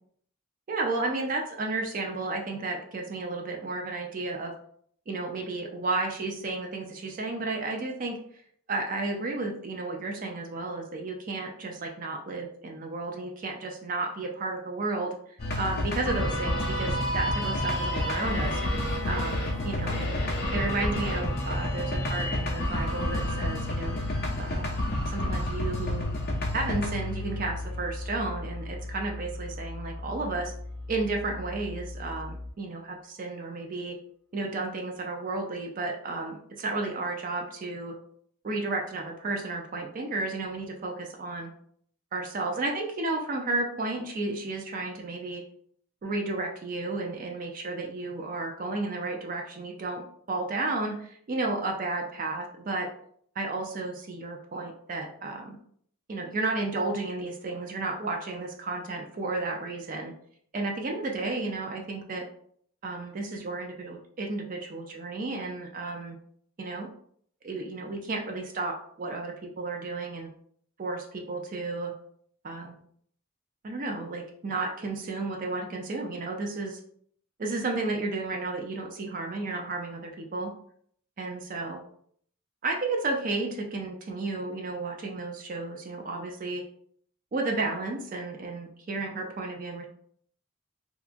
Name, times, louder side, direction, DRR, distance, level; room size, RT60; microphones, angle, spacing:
voice 1, 0.7-4.5 5.1-8.2 8.7-15.2 15.6-18.6 19.0-20.2 20.5-24.0 24.4-24.7 25.1-26.1 26.5-30.5 30.9-34.0 34.3-38.0 38.4-41.5 42.1-45.4 46.0-52.9 53.4-55.6 56.1-60.1 60.5-62.3 62.8-66.2 66.6-66.9 67.4-70.3 70.8-71.9 72.4-72.8 73.6-76.8 77.4-80.5 81.2-81.8 82.6-86.6 87.3-89.9, right 3 dB, 40° right, 2 dB, 0.4 m, -32 dB
sound 1, 15.4-32.5, left 1 dB, 45° left, 0.5 m, -30 dB
2.8 x 2.3 x 2.5 m, 0.62 s
head